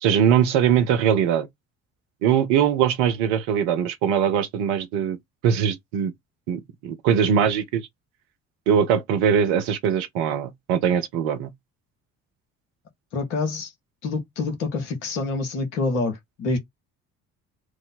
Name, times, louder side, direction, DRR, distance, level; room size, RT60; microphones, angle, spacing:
voice 1, 0.0-1.5 2.2-5.2 5.4-6.1 6.5-7.8 8.7-11.5, right 8 dB, 65° right, 0.8 m, -21 dB
voice 2, 13.1-13.7 14.0-16.6, left 3 dB, 70° left, 1.3 m, -27 dB
3.0 x 2.1 x 3.8 m
figure-of-eight pair, 50°, 42 cm